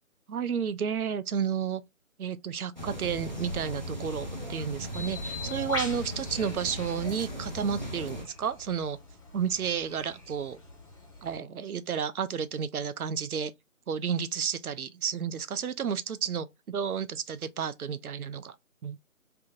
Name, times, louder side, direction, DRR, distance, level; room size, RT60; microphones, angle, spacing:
voice 1, 0.3-1.8 2.2-9.0 9.3-10.6 11.2-13.5 13.9-18.5 18.8-19.0, right 7 dB, 85° right, 0.6 m, -31 dB
sound 1, 2.8-8.2, left 1 dB, 35° right, 0.6 m, -37 dB
Bird, 4.9-11.4, left 3 dB, 20° left, 1.2 m, -42 dB
3.4 x 2.8 x 2.4 m
figure-of-eight pair, 170°, 42 cm